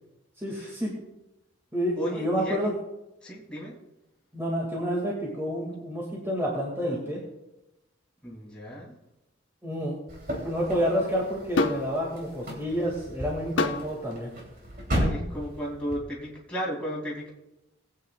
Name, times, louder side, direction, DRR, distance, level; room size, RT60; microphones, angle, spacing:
voice 1, 0.4-0.9 1.7-2.7 4.3-7.2 9.6-10.0 10.4-14.3, equal, 15° right, -3 dB, 2.1 m, -29 dB
voice 2, 2.0-2.6 3.2-3.8 8.2-9.0 14.9-17.3, equal, 5° left, -5 dB, 2.6 m, -34 dB
sound 1, 10.1-16.0, equal, 45° right, 3.0 m, -34 dB
sound 2, 11.6-11.9 13.6-13.9 14.9-15.1, left 3 dB, 65° left, 0.9 m, -26 dB
20.5 x 8.7 x 2.4 m, 0.95 s
head